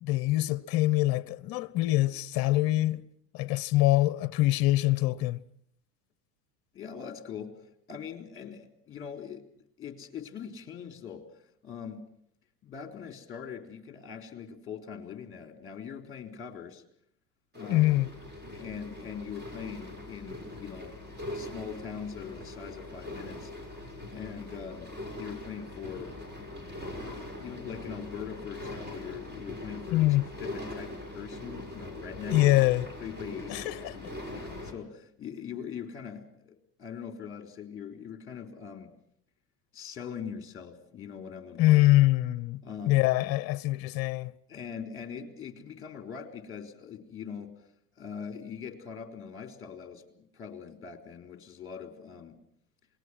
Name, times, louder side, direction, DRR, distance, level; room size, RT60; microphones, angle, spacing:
voice 1, 0.0-3.0 3.3-5.4 17.6-18.1 29.9-30.3 32.3-32.9 33.5-34.0 41.6-44.3, left 17 dB, 45° left, 1.0 m, -24 dB
voice 2, 6.7-7.6 7.9-9.4 9.8-11.3 11.6-12.0 12.6-16.8 17.5-17.9 18.5-21.0 21.3-23.5 24.1-26.2 26.9-32.4 33.0-38.9 39.7-41.8 42.6-43.0 44.5-47.5 48.0-52.4, left 7 dB, 25° left, 3.7 m, -42 dB
sound 1, 17.5-34.7, left 1 dB, 20° right, 6.9 m, -41 dB
27.5 x 20.0 x 6.2 m
hypercardioid pair, 95°, 49 cm